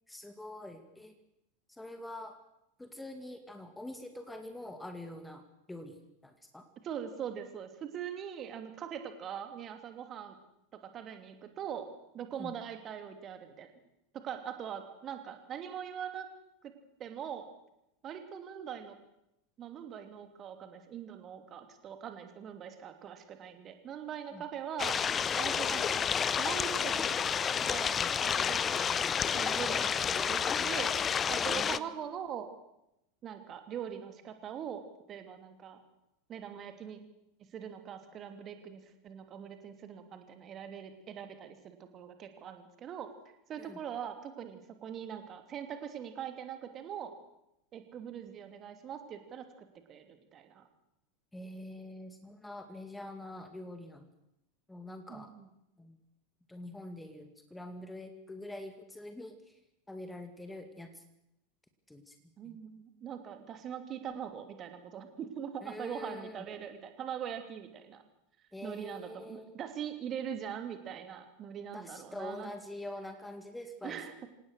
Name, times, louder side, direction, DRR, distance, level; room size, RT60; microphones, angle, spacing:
voice 1, 0.1-1.1 1.7-2.4 2.8-5.4 5.7-6.6 12.4-12.5 24.3-24.4 27.9-28.1 31.5-31.9 43.6-43.8 51.3-54.0 54.7-55.3 55.8-56.0 56.5-59.6 59.9-61.0 61.9-62.1 62.4-62.6 65.6-66.5 68.5-69.6 71.7-74.0, left 1 dB, 5° left, 7 dB, 2.3 m, -45 dB
voice 2, 6.8-10.4 10.7-11.9 12.1-13.7 14.2-16.3 16.6-16.7 17.0-17.5 18.0-19.0 19.6-25.0 25.4-26.0 26.4-27.2 27.6-27.9 28.2-28.9 29.3-31.0 31.3-32.5 33.2-35.8 36.3-37.0 37.5-43.1 43.5-47.2 47.7-50.6 55.1-55.5 62.4-68.0 68.6-72.5 73.8-74.3, right 8 dB, 30° right, 7 dB, 2.9 m, -42 dB
sound 1, 24.8-31.8, left 7 dB, 25° left, 0.7 m, -30 dB
26.5 x 18.5 x 6.6 m, 0.83 s
figure-of-eight pair, 85°, 0 cm